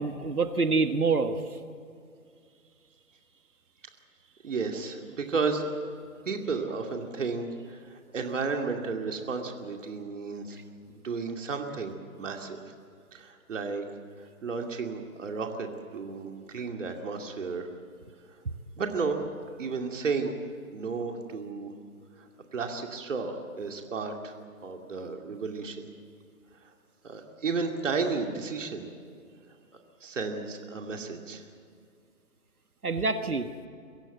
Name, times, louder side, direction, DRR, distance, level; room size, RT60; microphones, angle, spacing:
voice 1, 0.0-1.4 32.8-33.5, right 4 dB, 90° right, 9 dB, 1.6 m, -26 dB
voice 2, 4.4-5.6 6.2-10.6 11.0-12.6 13.1-13.8 14.2-15.7 15.9-17.7 18.8-19.2 19.6-20.3 20.7-21.7 22.2-24.4 24.6-25.8 26.6-26.7 27.0-28.9 30.0-31.5, right 4 dB, 60° right, 3 dB, 2.5 m, -33 dB
23.5 x 16.0 x 7.9 m, 2.3 s
figure-of-eight pair, 150°, 43 cm